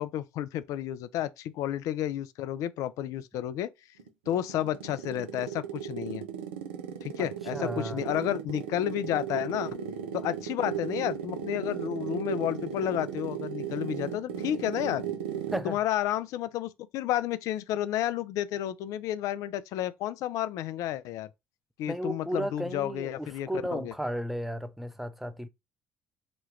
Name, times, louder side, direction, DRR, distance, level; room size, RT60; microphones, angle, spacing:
voice 1, 0.0-3.7 4.3-6.2 7.0-9.8 10.1-15.0 15.6-21.3 21.8-23.9, left 12 dB, 65° left, 0.3 m, -31 dB
sound 1, 4.0-15.8, right 8 dB, 85° right, 0.5 m, -36 dB
voice 2, 7.2-8.0 15.5-15.8 21.9-25.5, equal, 5° right, 0.5 m, -34 dB
3.0 x 2.3 x 3.1 m
hypercardioid pair, 60°, 6 cm